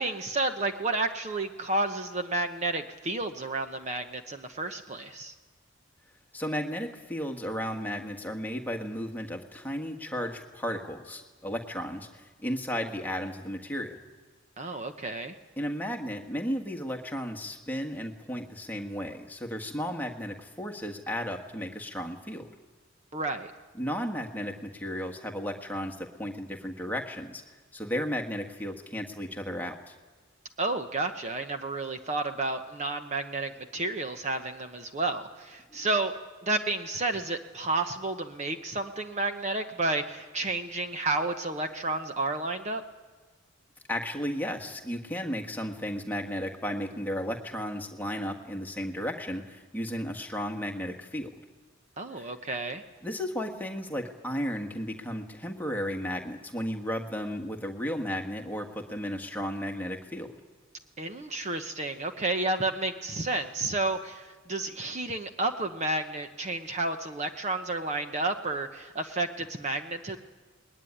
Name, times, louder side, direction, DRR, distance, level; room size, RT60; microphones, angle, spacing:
voice 1, 0.0-5.3 14.6-15.3 23.1-23.5 30.6-36.1 36.4-42.8 52.0-52.8 61.0-70.2, right 2 dB, 35° right, 6 dB, 1.0 m, -31 dB
voice 2, 6.3-13.9 15.6-22.5 23.8-27.4 27.7-29.9 43.9-51.3 52.1-52.3 53.0-60.3, equal, 10° left, 2 dB, 1.6 m, -34 dB
20.5 x 18.0 x 10.0 m, 1.4 s
head